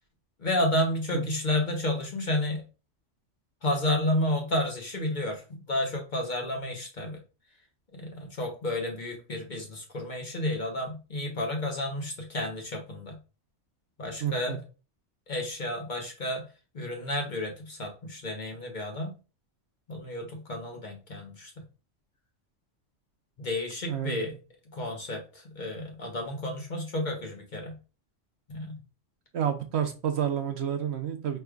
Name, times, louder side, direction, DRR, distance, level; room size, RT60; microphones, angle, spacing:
voice 1, 0.4-2.6 3.6-7.2 7.9-13.2 14.0-14.6 15.3-16.4 16.7-19.1 19.9-21.6 23.4-24.3 24.7-27.7 28.5-28.8, left 1 dB, 45° left, 2 dB, 0.9 m, -31 dB
voice 2, 14.2-14.6 23.9-24.2 29.3-31.4, right 9 dB, 65° right, 7 dB, 0.8 m, -29 dB
4.7 x 3.2 x 2.3 m, 0.33 s
omnidirectional pair, 1.3 m